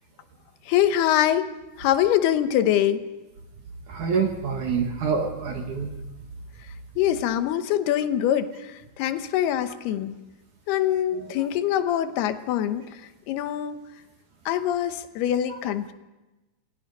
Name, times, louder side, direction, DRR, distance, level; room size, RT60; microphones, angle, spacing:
voice 1, 0.7-1.5 1.8-3.1 7.0-10.1 10.7-12.9 13.3-13.8 14.5-15.9, left 11 dB, 85° left, 10 dB, 3.0 m, -24 dB
voice 2, 3.9-5.9 11.1-11.3, right 5 dB, 60° right, 3 dB, 2.7 m, -26 dB
28.0 x 18.5 x 5.4 m, 1.1 s
omnidirectional pair, 4.5 m